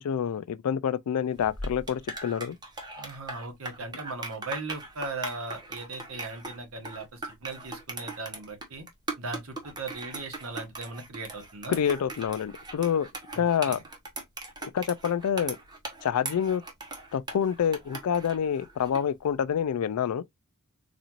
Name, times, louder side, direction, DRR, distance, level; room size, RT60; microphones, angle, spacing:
voice 1, 0.0-2.6 11.7-13.1 13.3-13.8 14.6-15.6 16.0-16.6 17.1-20.2, left 8 dB, 85° left, 0.4 m, -27 dB
sound 1, 1.3-19.1, right 2 dB, 20° right, 0.8 m, -40 dB
voice 2, 3.0-8.8 9.2-11.8 13.3-13.8, right 3 dB, 70° right, 1.1 m, -38 dB
4.1 x 2.5 x 2.9 m
head